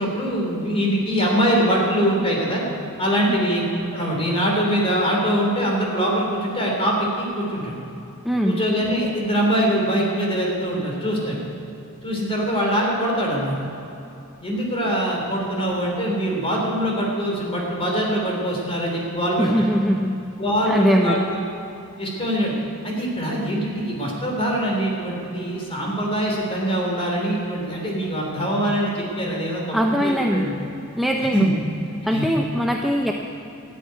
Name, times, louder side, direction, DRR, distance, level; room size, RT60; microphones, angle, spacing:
voice 1, 0.0-2.6 3.0-3.7 3.9-7.8 8.4-11.4 12.0-13.5 14.4-19.7 20.4-21.4 22.0-22.5 22.8-30.5 31.3-31.5 32.1-32.2, equal, 25° left, -1 dB, 3.3 m, -23 dB
voice 2, 8.2-8.6 19.4-20.1 20.7-21.2 29.7-30.5 31.0-31.5 32.0-33.1, equal, ahead, 0 dB, 0.6 m, -21 dB
13.0 x 8.7 x 9.3 m, 3.0 s
head